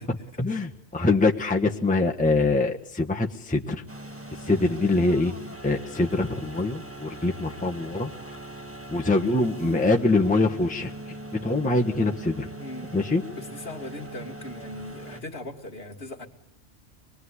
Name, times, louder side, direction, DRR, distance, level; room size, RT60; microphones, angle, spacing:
voice 1, 0.1-3.8 4.5-5.3 5.6-8.4 8.9-10.9 11.3-12.5 12.9-13.2, left 2 dB, 5° left, 1 dB, 1.4 m, -24 dB
sound 1, 3.9-15.2, right 1 dB, 10° right, 1.7 m, -41 dB
voice 2, 12.6-12.9 13.3-16.3, left 1 dB, 50° left, 2 dB, 2.8 m, -39 dB
25.5 x 22.0 x 9.9 m, 0.78 s
omnidirectional pair, 1.3 m